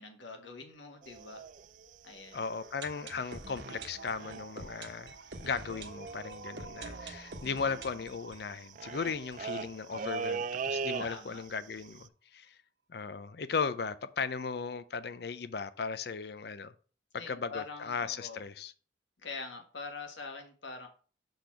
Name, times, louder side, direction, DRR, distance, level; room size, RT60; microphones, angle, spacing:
voice 1, 0.0-1.4 2.0-2.4 11.0-11.4 17.2-18.4 19.2-20.9, left 4 dB, 80° left, 1.4 m, -44 dB
sound 1, 1.0-3.4 3.6-3.9 4.2-4.6 4.9-5.0 5.2-11.5 11.8-12.1, right 5 dB, 40° right, 0.3 m, -40 dB
voice 2, 2.3-12.6 12.9-16.7 17.3-18.7, left 5 dB, 55° left, 0.5 m, -37 dB
sound 2, 2.3-10.1 10.4-10.5 10.6-10.7 11.3-11.4, right 3 dB, 65° right, 1.1 m, -47 dB
6.7 x 3.9 x 5.8 m
head